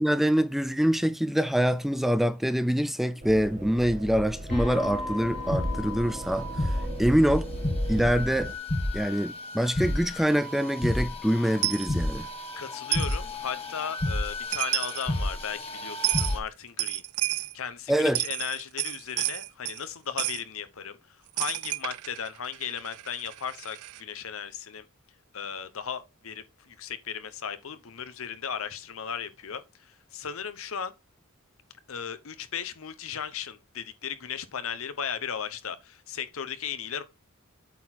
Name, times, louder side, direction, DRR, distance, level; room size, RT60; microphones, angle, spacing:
voice 1, 0.0-7.5 7.9-8.5 8.9-12.3 17.9-18.2, equal, ahead, 0.4 m, -25 dB
sound 1, 3.2-8.5, right 1 dB, 35° right, 1.3 m, -36 dB
sound 2, 4.5-16.4, left 1 dB, 25° left, 1.5 m, -32 dB
Coin (dropping), 11.6-11.9 12.9-13.2 14.3-14.4 14.5-15.1 16.0-16.3 16.8-17.5 18.0-19.8 20.2-20.4 21.4-24.0, right 18 dB, 75° right, 0.4 m, -31 dB
voice 2, 12.5-24.9 25.3-30.9 31.9-37.0, left 7 dB, 65° left, 0.9 m, -36 dB
8.3 x 4.3 x 4.3 m
head